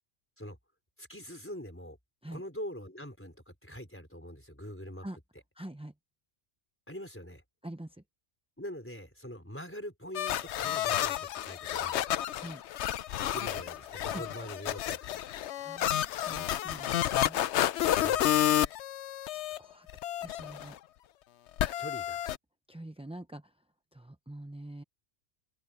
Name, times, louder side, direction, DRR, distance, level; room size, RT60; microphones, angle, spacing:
voice 1, 1.0-2.0 2.3-5.0 6.9-7.4 8.6-12.0 13.3-15.2 18.0-18.2 21.8-22.2, equal, 10° left, 4.5 m, -43 dB
voice 2, 5.6-5.9 7.6-8.0 12.4-12.6 14.1-14.2 15.6-17.4 19.3-19.9 20.2-20.8 22.7-23.6 23.9-24.8, right 1 dB, 5° right, 0.4 m, -45 dB
sound 1, 10.1-19.6 19.9-20.7 21.6-22.4, left 11 dB, 70° left, 0.9 m, -30 dB
open air
omnidirectional pair, 1.3 m